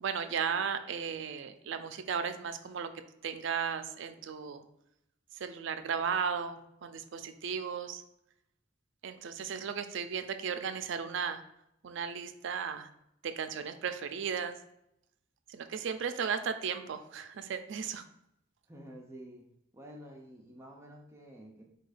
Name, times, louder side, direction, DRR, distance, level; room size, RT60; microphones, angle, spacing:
voice 1, 0.0-2.9 3.2-4.7 5.4-8.0 9.0-11.4 11.8-12.9 13.2-14.6 15.5-18.0, right 6 dB, 70° right, 9 dB, 0.4 m, -35 dB
voice 2, 18.7-19.5 19.7-21.6, equal, 15° right, 0 dB, 0.5 m, -50 dB
4.6 x 2.3 x 4.8 m, 0.78 s
head